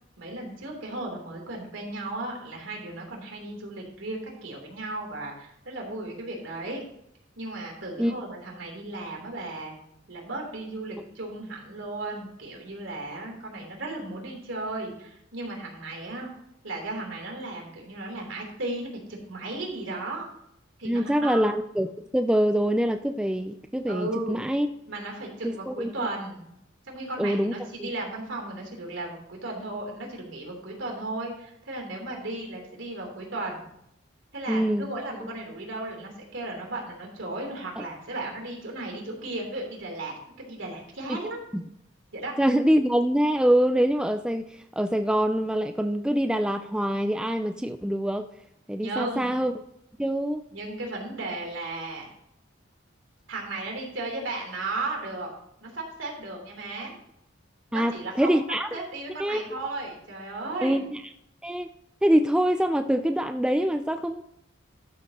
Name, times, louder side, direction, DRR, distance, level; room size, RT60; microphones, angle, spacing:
voice 1, 0.2-6.8 7.4-9.8 10.1-16.3 16.6-19.0 19.3-20.3 20.8-21.5 23.9-24.4 24.9-26.4 26.8-33.6 34.3-41.4 42.1-42.3 48.8-49.4 50.5-52.1 53.3-55.3 55.6-56.9 57.7-58.4 58.7-60.8, right 2 dB, 80° right, 0 dB, 3.3 m, -35 dB
voice 2, 20.9-21.9 22.1-24.7 25.4-26.1 27.2-27.5 27.8-27.9 34.5-34.9 37.8-37.9 41.1-41.2 42.4-48.3 48.7-49.5 50.0-50.4 57.7-57.9 58.2-58.7 59.2-59.6 60.6-61.0 61.4-61.7 62.0-64.2, equal, 5° right, 7 dB, 0.3 m, -24 dB
13.0 x 7.5 x 2.9 m, 0.78 s
head